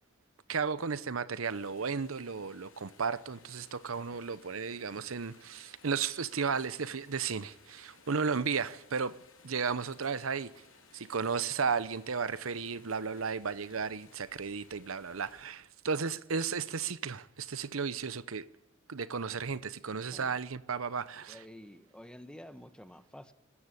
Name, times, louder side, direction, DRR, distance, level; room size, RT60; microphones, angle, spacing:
voice 1, 0.5-9.2 9.4-10.5 10.9-18.5 18.9-21.4, right 5 dB, 90° right, 0.8 m, -34 dB
sound 1, 1.4-15.4, left 4 dB, 70° left, 6.7 m, -60 dB
voice 2, 21.2-23.3, equal, 5° left, 1.0 m, -50 dB
20.0 x 14.5 x 9.9 m
head